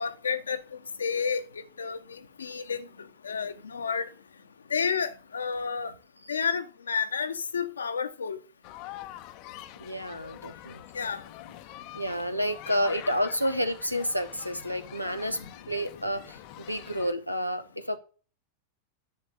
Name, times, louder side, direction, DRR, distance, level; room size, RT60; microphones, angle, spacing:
voice 1, 0.0-2.9 3.2-4.1 4.7-5.9 6.3-8.4 10.9-11.2, left 6 dB, 70° left, 0.8 m, -31 dB
sound 1, 8.6-17.1, left 14 dB, 40° left, 0.7 m, -45 dB
voice 2, 9.8-10.8 11.9-15.4 15.7-18.0, equal, 90° right, 1.0 m, -30 dB
10.5 x 6.9 x 4.0 m
figure-of-eight pair, 90°, 0 cm